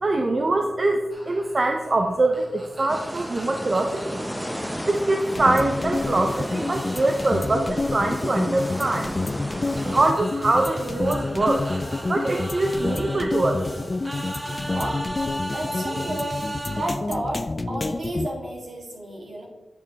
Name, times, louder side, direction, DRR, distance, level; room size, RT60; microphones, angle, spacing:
voice 1, 0.0-4.2 4.9-9.1 9.8-11.7 12.1-13.6, right 2 dB, 45° right, 4 dB, 0.5 m, -23 dB
sound 1, 1.1-5.8 6.3-17.0, right 1 dB, 25° right, 1.3 m, -38 dB
sound 2, 2.9-10.1, equal, ahead, 0.6 m, -33 dB
sound 3, 5.4-18.3, left 3 dB, 40° left, 0.3 m, -29 dB
voice 2, 14.7-15.1 15.4-16.3 16.7-19.4, right 1 dB, 70° right, -2 dB, 2.0 m, -32 dB
9.2 x 5.3 x 2.9 m, 1.3 s
cardioid pair, 50°, 0 cm